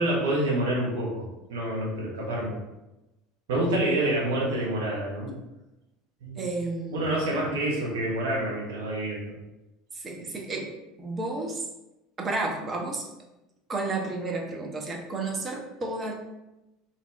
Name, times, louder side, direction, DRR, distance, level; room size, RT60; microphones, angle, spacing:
voice 1, 0.0-2.6 3.5-5.3 6.2-6.4 6.9-9.4 10.1-10.2, right 1 dB, 65° right, -4 dB, 0.9 m, -27 dB
voice 2, 6.4-7.4 9.9-10.7 11.0-11.6 12.2-13.0 13.7-16.2, right 3 dB, 25° right, 0 dB, 0.6 m, -32 dB
2.6 x 2.1 x 3.2 m, 0.98 s
figure-of-eight pair, 70°, 0 cm